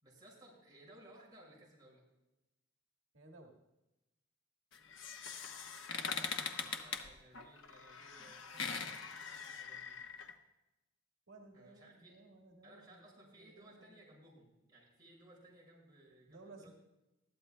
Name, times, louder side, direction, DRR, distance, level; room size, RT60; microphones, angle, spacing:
voice 1, 0.0-2.0 6.0-9.9 11.5-12.2 12.6-16.7, right 1 dB, 20° right, -4 dB, 5.6 m, -61 dB
voice 2, 3.1-3.5 11.3-13.9 16.3-16.7, right 2 dB, 85° right, 0 dB, 1.7 m, -58 dB
sound 1, 4.7-10.3, left 5 dB, 70° left, 1.1 m, -42 dB
20.5 x 14.0 x 2.2 m, 0.98 s
head